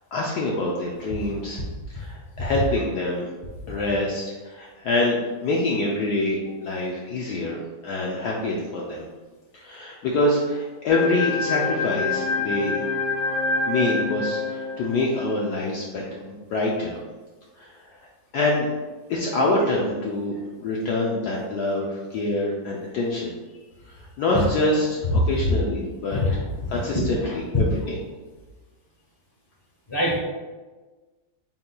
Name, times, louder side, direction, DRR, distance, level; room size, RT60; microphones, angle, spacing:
voice 1, 0.1-1.6 1.9-3.3 3.7-9.0 9.5-12.9 13.7-17.0 17.6-17.9 18.3-18.7 19.1-23.3 23.9-26.2 26.7-27.9, left 2 dB, 70° left, -2 dB, 1.0 m, -26 dB
sound 1, 10.9-15.3, left 3 dB, 85° left, 1.6 m, -26 dB
voice 2, 26.1-27.4 29.9-30.2, left 1 dB, 15° left, -4 dB, 1.0 m, -26 dB
5.8 x 3.8 x 2.2 m, 1.3 s
omnidirectional pair, 2.0 m